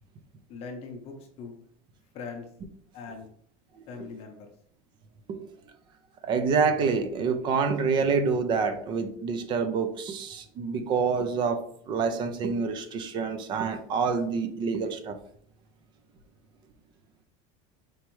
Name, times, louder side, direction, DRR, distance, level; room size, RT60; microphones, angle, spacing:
voice 1, 0.5-1.5 2.1-2.5 2.9-3.3 3.9-4.5, left 4 dB, 35° left, 3 dB, 0.7 m, -40 dB
voice 2, 6.2-15.2, right 5 dB, 25° right, 8 dB, 0.4 m, -27 dB
4.6 x 3.0 x 3.0 m, 0.62 s
cardioid pair, 170°, 19 cm